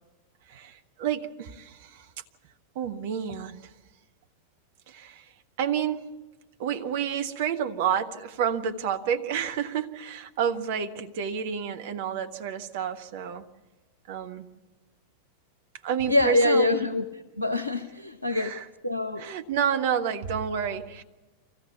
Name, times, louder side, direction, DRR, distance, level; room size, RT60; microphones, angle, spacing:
voice 1, 0.5-2.0 2.7-3.6 4.9-5.2 5.6-6.1 6.6-13.4 14.1-14.5 15.8-16.9 18.3-18.6 19.2-21.0, right 8 dB, 50° right, 8 dB, 1.0 m, -29 dB
voice 2, 16.0-17.0 17.4-18.6 18.8-19.3, left 2 dB, 85° left, 13 dB, 0.7 m, -24 dB
24.0 x 15.5 x 7.2 m, 1.2 s
figure-of-eight pair, 90°, 0 cm